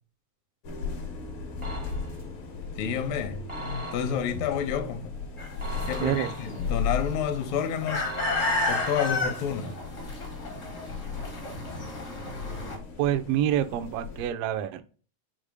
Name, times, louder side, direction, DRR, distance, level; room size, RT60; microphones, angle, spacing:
sound 1, 0.6-14.3, left 5 dB, 60° left, 1.4 m, -37 dB
sound 2, 1.6-2.3 3.5-4.4 5.6-6.8 8.0-9.7, right 1 dB, 30° right, 0.5 m, -39 dB
voice 1, 2.8-3.4 3.9-5.2 5.9-8.1 8.7-9.7, left 8 dB, 75° left, 1.9 m, -29 dB
sound 3, 5.4-12.8, left 2 dB, 45° left, 0.9 m, -32 dB
voice 2, 6.0-6.3 13.0-14.8, right 11 dB, 80° right, 1.4 m, -27 dB
5.1 x 2.0 x 4.7 m
omnidirectional pair, 3.4 m